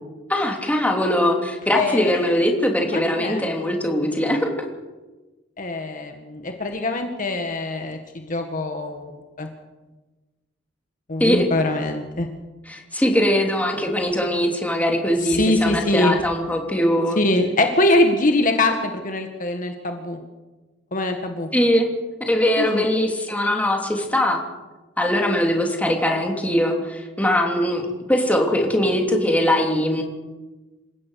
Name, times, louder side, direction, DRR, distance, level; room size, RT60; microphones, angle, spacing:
voice 1, 0.3-4.7 11.2-11.5 12.7-17.2 21.5-21.9 22.3-24.4 25.0-30.0, left 1 dB, 10° left, 1 dB, 3.2 m, -21 dB
voice 2, 1.7-2.3 2.9-3.5 5.6-9.5 11.1-12.3 15.2-16.1 17.2-20.2 20.9-21.5 22.6-22.9, left 2 dB, 45° left, 5 dB, 1.8 m, -23 dB
28.0 x 16.0 x 6.5 m, 1.2 s
head